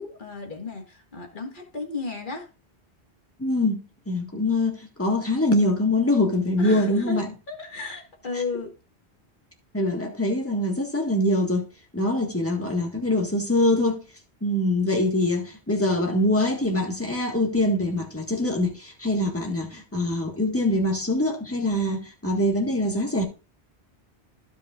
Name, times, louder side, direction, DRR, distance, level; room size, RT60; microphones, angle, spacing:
voice 1, 0.0-2.5 6.6-7.2 7.5-8.7, left 3 dB, 50° left, 1.9 m, -34 dB
voice 2, 3.4-7.3 9.7-11.6 11.9-14.0 14.4-23.2, left 1 dB, 15° left, 1.6 m, -24 dB
15.5 x 5.5 x 2.4 m
omnidirectional pair, 1.1 m